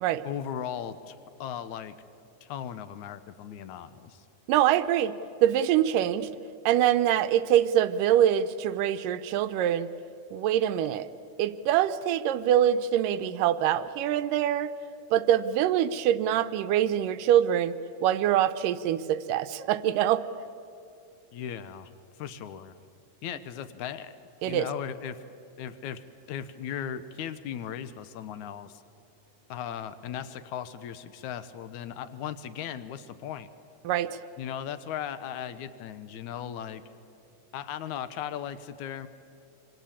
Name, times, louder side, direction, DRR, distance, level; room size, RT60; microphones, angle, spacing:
voice 1, 0.2-1.2 1.4-1.9 2.4-4.3 21.3-21.9 22.2-22.8 23.2-24.2 24.4-25.2 25.6-26.0 26.3-28.8 29.5-33.5 34.4-36.8 37.5-39.1, left 9 dB, 70° left, 13 dB, 2.0 m, -37 dB
voice 2, 4.5-6.3 6.7-9.9 10.3-11.1 11.4-14.7 15.1-20.3 24.4-24.7 33.8-34.2, right 11 dB, 75° right, 12 dB, 2.2 m, -24 dB
26.0 x 25.5 x 8.7 m, 2.6 s
omnidirectional pair, 4.2 m